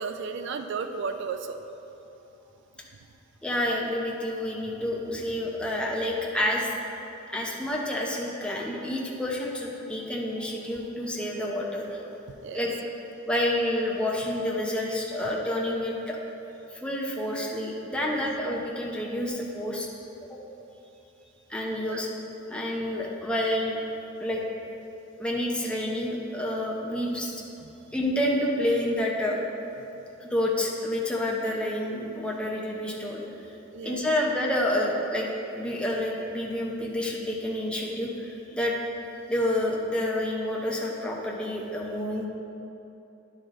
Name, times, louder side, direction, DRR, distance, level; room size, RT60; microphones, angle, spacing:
voice 1, 0.0-1.6 12.4-12.6 18.1-18.4 21.7-22.0 27.6-27.7 33.7-34.1, right 5 dB, 65° right, 7 dB, 0.4 m, -34 dB
voice 2, 3.4-6.7 7.3-12.0 12.5-12.7 13.2-16.2 16.7-19.9 20.3-20.4 21.5-22.1 22.5-23.8 24.2-24.4 25.2-27.3 27.9-29.4 30.2-33.2 33.8-35.3 35.5-38.7 39.3-42.3, left 1 dB, 5° left, -3 dB, 0.8 m, -29 dB
10.5 x 4.9 x 3.7 m, 2.9 s
head